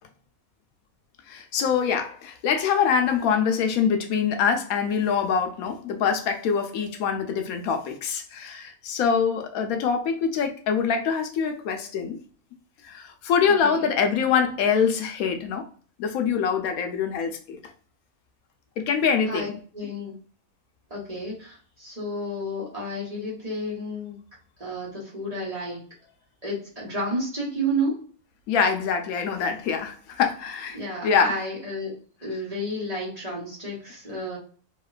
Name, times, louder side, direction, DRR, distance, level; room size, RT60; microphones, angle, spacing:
voice 1, 1.3-12.2 12.8-15.7 16.0-17.6 18.8-19.5 28.5-31.4, left 6 dB, 85° left, 1.1 m, -24 dB
voice 2, 13.6-13.9 19.3-20.2 20.9-24.2 24.6-25.8 26.4-28.0 30.7-34.4, right 1 dB, 30° right, 1.2 m, -31 dB
2.9 x 2.8 x 2.4 m
omnidirectional pair, 1.5 m